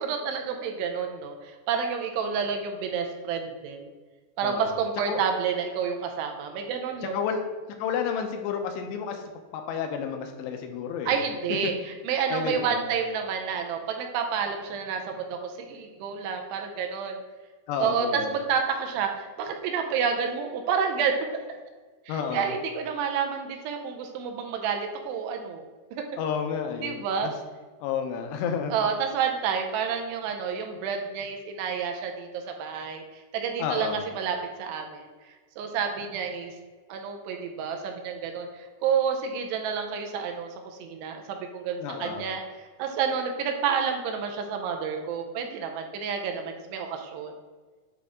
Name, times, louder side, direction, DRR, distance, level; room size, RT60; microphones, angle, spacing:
voice 1, 0.0-3.9 4.4-7.2 11.1-11.7 12.0-17.2 17.8-21.2 22.1-25.6 25.9-26.0 26.8-27.3 28.7-33.0 33.3-35.1 35.6-36.5 36.9-40.5 40.8-42.4 42.8-47.3, right 6 dB, 85° right, 4 dB, 2.8 m, -29 dB
voice 2, 4.4-4.8 5.1-5.2 7.0-7.4 7.8-9.2 9.5-11.2 12.3-12.9 17.7-18.4 22.1-22.5 26.2-27.3 27.8-28.8 33.6-34.0 41.8-42.3, left 7 dB, 85° left, 5 dB, 2.9 m, -31 dB
9.3 x 3.7 x 3.6 m, 1.4 s
omnidirectional pair, 4.9 m